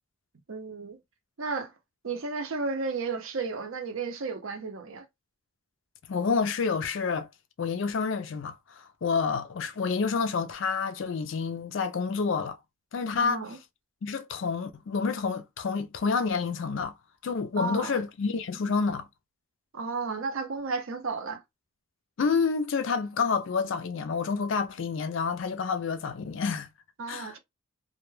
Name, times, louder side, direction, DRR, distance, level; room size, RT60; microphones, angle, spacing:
voice 1, 0.5-1.0 1.4-1.7 2.0-5.0 13.2-13.6 17.6-18.0 19.7-21.4 27.0-27.4, right 4 dB, 65° right, 0.6 m, -33 dB
voice 2, 6.1-7.3 7.6-12.6 12.9-13.4 14.0-16.9 17.2-19.1 22.2-26.7 27.1-27.3, left 5 dB, 55° left, 0.4 m, -28 dB
2.2 x 2.1 x 3.1 m
head